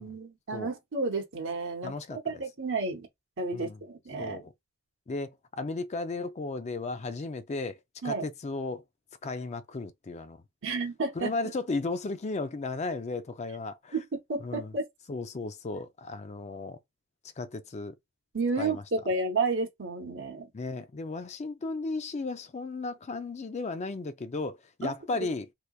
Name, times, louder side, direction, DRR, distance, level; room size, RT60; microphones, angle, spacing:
voice 1, 0.0-3.1 3.4-4.4 8.0-8.3 10.6-11.3 13.9-14.9 18.3-20.5 24.8-24.9, right 3 dB, 60° right, 0.9 m, -31 dB
voice 2, 1.8-2.4 3.5-3.8 4.2-4.5 5.1-8.8 9.2-10.4 11.1-14.0 14.4-14.7 15.1-16.8 17.4-18.0 18.6-18.8 20.5-25.5, left 3 dB, 30° left, 0.4 m, -35 dB
3.2 x 3.0 x 2.3 m
head